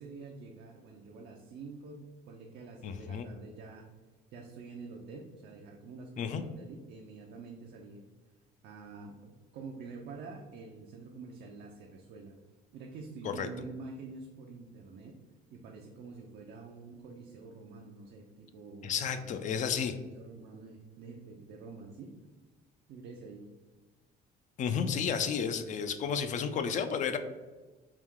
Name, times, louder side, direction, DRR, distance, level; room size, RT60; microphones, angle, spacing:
voice 1, 0.0-3.9 4.3-8.1 8.6-12.4 12.7-15.2 15.5-19.5 20.1-22.1 22.9-23.5, right 4 dB, 75° right, 1 dB, 0.5 m, -47 dB
voice 2, 2.8-3.3 6.2-6.4 13.2-13.5 18.8-19.9 24.6-27.2, left 7 dB, 45° left, 9 dB, 0.4 m, -32 dB
4.7 x 2.3 x 3.6 m, 1.2 s
cardioid pair, 110°, 17 cm